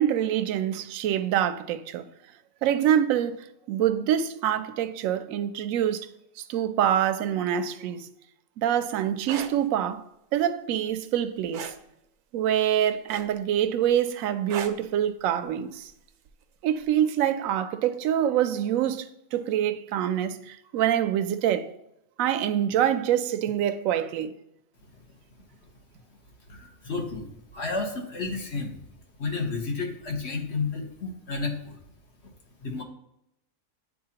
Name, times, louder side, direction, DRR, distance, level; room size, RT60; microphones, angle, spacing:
voice 1, 0.0-2.1 2.6-6.1 6.4-8.1 8.6-10.0 10.3-11.7 12.3-15.9 16.6-21.7 22.2-24.3, right 10 dB, 70° right, 0.9 m, -25 dB
sound 1, 9.2-9.5 11.5-11.8 13.1-13.5 14.5-14.8 16.3-16.4, right 8 dB, 90° right, 1.2 m, -35 dB
voice 2, 26.5-28.8 29.2-31.8 32.6-32.8, left 4 dB, 50° left, 1.3 m, -31 dB
9.3 x 4.1 x 2.8 m
omnidirectional pair, 1.6 m